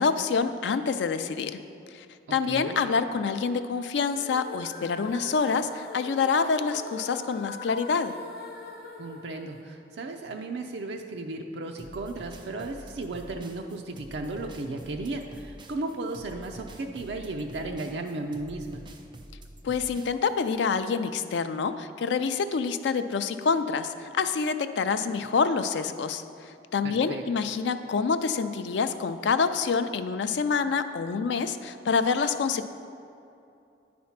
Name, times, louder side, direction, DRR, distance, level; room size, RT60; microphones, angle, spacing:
voice 1, 0.0-1.6 2.3-8.2 19.6-26.2 26.7-32.7, left 5 dB, 90° left, 10 dB, 0.4 m, -27 dB
voice 2, 2.5-2.8 9.0-18.8 26.8-27.2, right 2 dB, 80° right, 2 dB, 0.5 m, -35 dB
sound 1, 4.1-10.3, left 2 dB, 60° left, 1.1 m, -43 dB
sound 2, 11.8-20.5, right 1 dB, 25° right, 0.5 m, -46 dB
9.4 x 4.2 x 5.8 m, 2.6 s
head